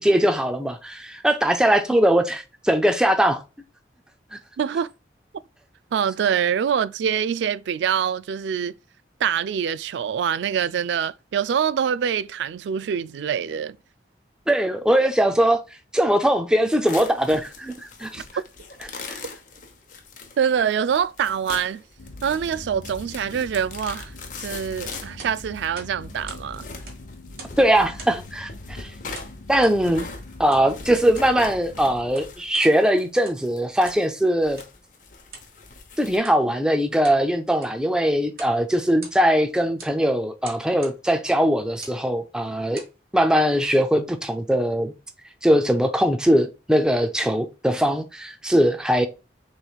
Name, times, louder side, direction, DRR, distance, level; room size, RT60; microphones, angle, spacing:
voice 1, 0.0-3.4 4.3-4.4 14.5-15.6 15.9-17.7 18.0-18.2 19.1-19.2 27.6-28.9 29.5-30.1 30.4-34.6 36.0-42.8 43.1-44.9 45.4-49.1, equal, 5° right, 0.4 m, -21 dB
voice 2, 4.6-4.9 5.9-8.7 9.2-13.8 20.4-21.8 22.2-24.1 24.4-26.7, right 8 dB, 80° right, 0.3 m, -25 dB
sound 1, 16.9-36.2, left 4 dB, 45° left, 0.9 m, -41 dB
sound 2, 22.0-32.1, left 2 dB, 85° left, 0.8 m, -42 dB
sound 3, 24.9-26.5 26.7-27.6 28.0-28.3 29.1-29.8 30.5-30.7 31.0-31.4 31.9-32.7 33.1-33.5 33.8-34.1 34.6-34.7 35.3-35.5 36.2-36.4 36.8-37.2 37.5-37.8 38.3-38.6 38.9-39.4 39.8-40.0 40.4-41.0 41.7-42.0 42.5-43.0, right 4 dB, 55° right, 1.5 m, -43 dB
6.4 x 3.1 x 2.3 m
head